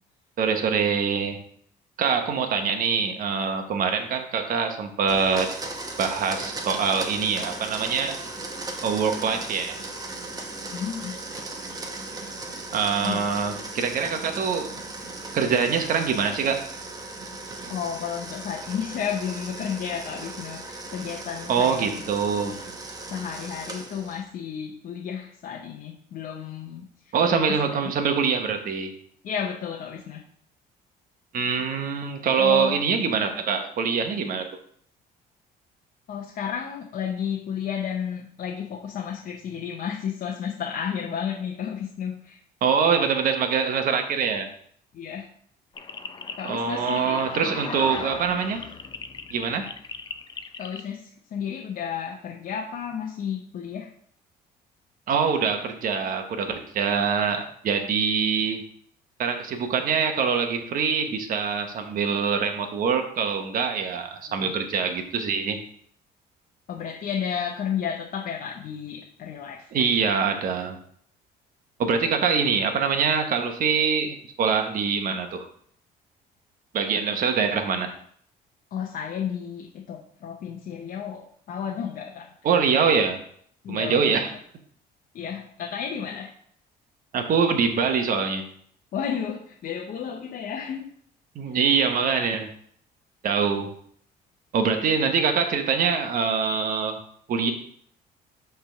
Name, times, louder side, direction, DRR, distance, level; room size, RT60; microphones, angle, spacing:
voice 1, 0.4-1.4 2.0-5.5 6.0-8.2 8.8-9.8 12.7-14.8 15.3-16.7 21.5-22.6 27.1-28.9 31.3-34.5 42.6-44.5 46.4-48.6 49.3-49.7 55.1-58.7 59.2-65.6 69.7-70.8 71.8-75.5 76.7-77.9 82.4-83.2 83.7-84.3 87.1-88.5 91.3-92.5 93.2-93.7 94.5-97.0 97.3-97.5, right 6 dB, 55° right, 5 dB, 1.1 m, -24 dB
Domestic sounds home sounds, 5.1-24.3, right 2 dB, 20° right, 1.0 m, -37 dB
voice 2, 10.7-11.2 13.0-13.3 17.7-21.9 23.1-27.8 29.2-30.2 32.4-32.8 36.1-42.4 44.9-45.3 46.4-48.2 50.6-53.9 64.3-64.5 66.7-69.7 78.7-82.3 83.6-84.2 85.1-86.3 88.9-90.9, left 8 dB, 55° left, 0 dB, 0.8 m, -32 dB
sound 1, 45.8-50.8, left 5 dB, 25° left, 0.5 m, -37 dB
5.7 x 3.5 x 5.7 m, 0.62 s
cardioid pair, 110°, 17 cm